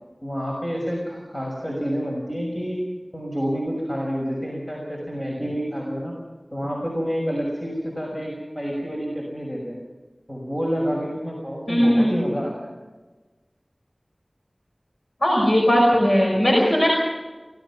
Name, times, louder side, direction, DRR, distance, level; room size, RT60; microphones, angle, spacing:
voice 1, 0.2-2.8 3.1-6.2 6.5-9.8 10.3-12.7, equal, 25° left, -2 dB, 6.1 m, -28 dB
voice 2, 11.7-12.1 15.2-16.9, equal, 80° left, -1 dB, 5.2 m, -18 dB
24.5 x 17.5 x 6.1 m, 1.2 s
wide cardioid pair, 45°, 0 cm